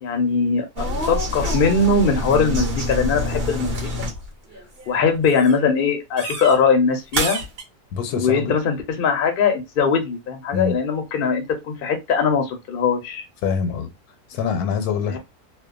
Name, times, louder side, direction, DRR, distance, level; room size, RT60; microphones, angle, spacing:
voice 1, 0.0-4.1 4.9-7.4 8.1-13.2 15.1-15.2, left 5 dB, 55° left, 0.6 m, -21 dB
sound 1, 0.8-4.3 4.5-5.0 5.3-5.6 6.2-6.6 7.1-7.6, equal, 50° right, 0.9 m, -26 dB
voice 2, 7.9-8.5 10.5-10.8 13.4-13.9 14.3-15.2, left 6 dB, 80° left, 1.1 m, -24 dB
2.7 x 2.1 x 2.3 m
omnidirectional pair, 1.6 m